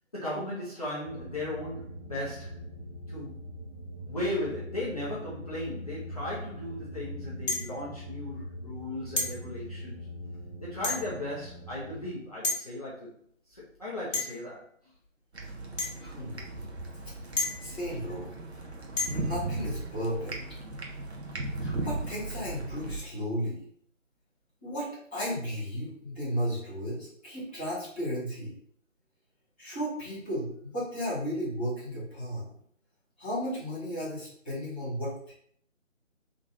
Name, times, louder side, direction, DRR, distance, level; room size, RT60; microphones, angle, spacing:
voice 1, 0.1-2.6 3.1-3.4 4.0-10.1 10.6-13.1 13.5-14.6 15.7-15.8, left 1 dB, 30° left, -8 dB, 0.9 m, -36 dB
sound 1, 1.0-12.1, equal, 30° right, 1.1 m, -42 dB
sound 2, 7.5-7.8 9.2-9.4 10.8-11.2 12.4-12.6 14.1-14.5 15.8-16.0 17.4-17.8 19.0-19.3, left 3 dB, 80° left, 1.7 m, -31 dB
sound 3, 15.3-23.0, right 2 dB, 55° right, 1.1 m, -37 dB
voice 2, 16.0-16.5 17.6-18.3 19.1-20.3 21.6-23.6 24.6-28.5 29.6-32.5 33.2-35.3, equal, 10° left, -15 dB, 1.1 m, -34 dB
3.7 x 3.0 x 3.6 m, 0.63 s
figure-of-eight pair, 160°, 39 cm